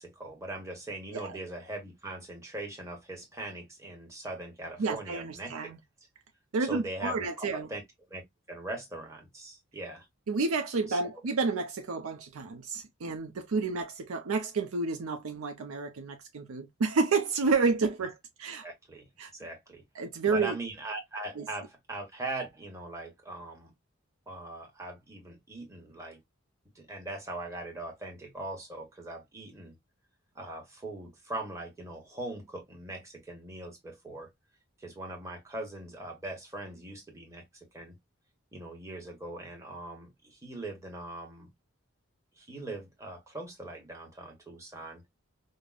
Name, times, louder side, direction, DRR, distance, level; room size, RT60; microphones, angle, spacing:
voice 1, 0.0-5.8 6.6-7.8 8.1-8.2 8.5-10.1 10.9-11.0 18.6-19.1 19.3-19.8 20.3-23.7 24.3-26.2 26.7-29.7 30.3-34.3 34.8-37.4 37.7-37.9 38.5-41.5 42.4-45.0, right 2 dB, 15° right, 1.0 m, -41 dB
voice 2, 4.8-5.8 6.5-7.7 10.3-18.7 19.2-19.3 20.0-20.6 21.4-21.5, right 4 dB, 90° right, 0.5 m, -30 dB
5.0 x 2.0 x 2.3 m
head